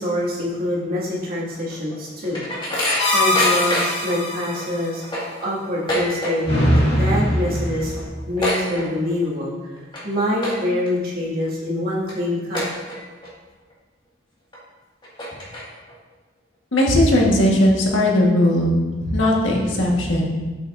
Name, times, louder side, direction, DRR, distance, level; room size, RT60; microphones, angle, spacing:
voice 1, 0.0-2.4 3.0-5.0 5.4-6.6 6.9-7.9 8.3-9.5 10.0-12.6, left 1 dB, 55° right, -6 dB, 2.2 m, -25 dB
sound 1, 1.7-4.1 4.5-4.6 4.9-6.6 6.9-7.3 7.6-7.7 7.9-9.3 9.8-10.0 10.4-10.9 11.4-11.5 12.1-12.2 12.5-13.3 13.7-13.8 14.5-14.6 15.0-15.9, left 1 dB, 25° left, 2.0 m, -26 dB
sound 2, 3.0-4.6 6.5-8.0, left 1 dB, 60° left, 2.5 m, -21 dB
voice 2, 16.7-20.3, left 1 dB, 80° left, -2 dB, 1.6 m, -18 dB
8.4 x 8.0 x 2.7 m, 1.3 s
head